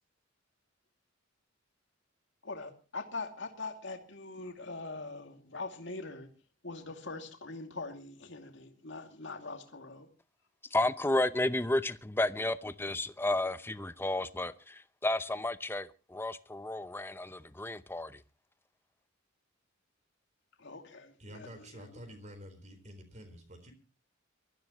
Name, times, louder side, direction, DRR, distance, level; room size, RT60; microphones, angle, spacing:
voice 1, 2.4-6.3 6.6-10.1 20.6-21.9, left 3 dB, 65° left, 2.5 m, -43 dB
voice 2, 10.7-18.2, left 2 dB, 10° left, 0.7 m, -32 dB
voice 3, 21.2-23.7, equal, 35° right, 4.2 m, -49 dB
24.0 x 14.0 x 3.1 m
head